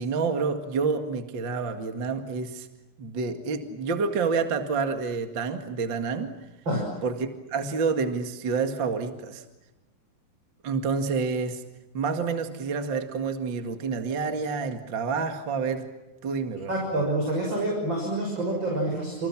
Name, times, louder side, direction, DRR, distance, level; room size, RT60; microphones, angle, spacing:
voice 1, 0.0-2.7 3.0-6.3 7.0-9.4 10.6-11.6 11.9-15.9 16.2-16.7, right 5 dB, 45° right, 6 dB, 1.6 m, -28 dB
voice 2, 16.7-19.3, right 1 dB, 25° right, 0 dB, 6.7 m, -27 dB
29.5 x 29.0 x 6.1 m, 1.0 s
omnidirectional pair, 5.1 m